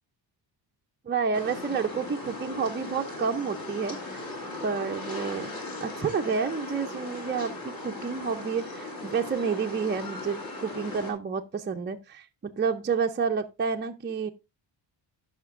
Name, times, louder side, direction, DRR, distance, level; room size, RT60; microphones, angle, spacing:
voice 1, 1.1-4.3 4.6-5.5 5.8-14.3, right 6 dB, 25° right, 0.5 m, -30 dB
sound 1, 1.3-11.1, left 2 dB, 50° left, 2.7 m, -38 dB
14.0 x 5.7 x 2.4 m
cardioid pair, 120°, 46 cm